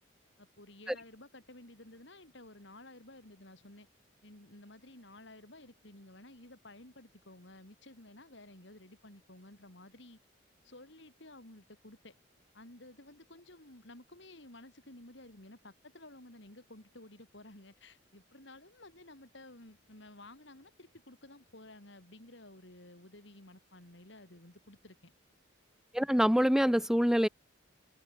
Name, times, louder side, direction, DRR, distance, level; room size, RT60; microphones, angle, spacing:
voice 1, 0.4-3.9 4.2-10.2 10.6-12.1 12.5-25.1, left 1 dB, 60° left, 4.3 m, -54 dB
voice 2, 25.9-27.3, equal, 5° right, 0.6 m, -25 dB
head